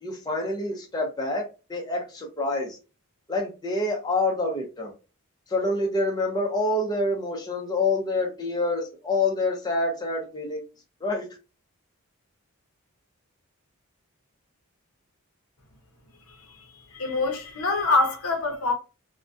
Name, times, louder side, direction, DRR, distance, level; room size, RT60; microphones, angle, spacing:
voice 1, 0.0-2.8 3.3-4.9 5.5-10.6 11.0-11.3, left 2 dB, 20° left, 0.5 m, -27 dB
voice 2, 16.3-18.7, left 3 dB, 75° left, 0.6 m, -26 dB
2.3 x 2.1 x 2.5 m
head